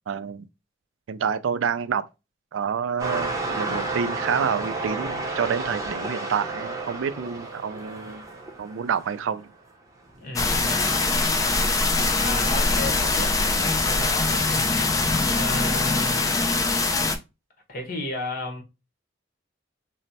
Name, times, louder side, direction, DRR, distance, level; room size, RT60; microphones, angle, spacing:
voice 1, 0.1-0.5 1.1-2.0 2.5-8.3 8.6-9.5, right 7 dB, 85° right, 0.4 m, -28 dB
sound 1, 3.0-9.4 10.1-10.2, right 3 dB, 15° right, 0.7 m, -31 dB
voice 2, 10.2-10.8 12.2-15.0 15.3-16.4 17.7-18.6, left 2 dB, 50° left, 1.1 m, -34 dB
sound 2, 10.4-17.2, left 3 dB, 20° left, 0.4 m, -23 dB
3.2 x 2.0 x 4.0 m
head